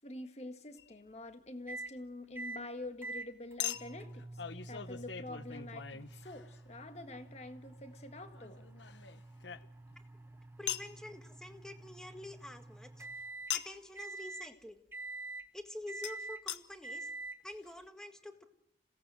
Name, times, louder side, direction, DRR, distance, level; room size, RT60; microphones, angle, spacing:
voice 1, 0.0-4.2 4.7-8.7, left 2 dB, 40° left, 8 dB, 1.7 m, -46 dB
Chink clink, 0.8-0.9 3.6-6.8 8.3-10.0 10.7-10.9 13.5-13.9 16.0-16.1 16.5-16.6 17.3-17.4 17.5-17.6, left 10 dB, 85° left, 1.0 m, -41 dB
sound 1, 1.7-1.9 2.4-2.6 3.0-13.6 14.0-14.5 14.9-15.5 15.9-16.4 16.8-17.4, right 2 dB, 15° right, 1.1 m, -47 dB
voice 2, 10.6-13.1 13.5-14.8 15.5-17.1 17.4-18.5, left 1 dB, 5° left, 7 dB, 1.6 m, -47 dB
27.5 x 17.5 x 7.7 m, 0.79 s
head